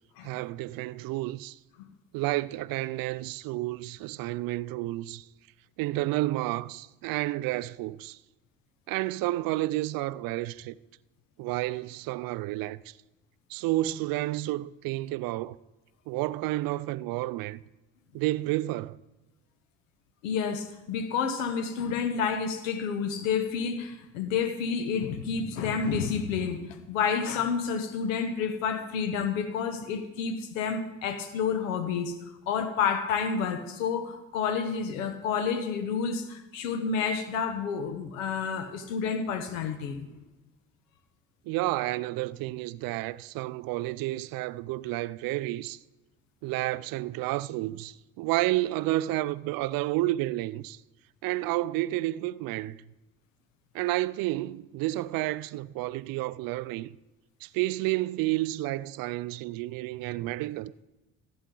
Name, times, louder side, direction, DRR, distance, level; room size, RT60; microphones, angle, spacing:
voice 1, 0.2-1.6 2.1-5.2 5.8-8.2 8.9-10.8 11.4-12.9 13.5-15.6 16.1-17.6 18.1-19.0 41.5-45.8 46.4-50.8 51.2-52.8 53.7-57.0 57.4-60.7, right 17 dB, 65° right, 0.5 m, -30 dB
voice 2, 20.2-32.2 32.5-40.1, left 6 dB, 85° left, 1.0 m, -29 dB
15.0 x 8.4 x 3.8 m
hypercardioid pair, 55°, 38 cm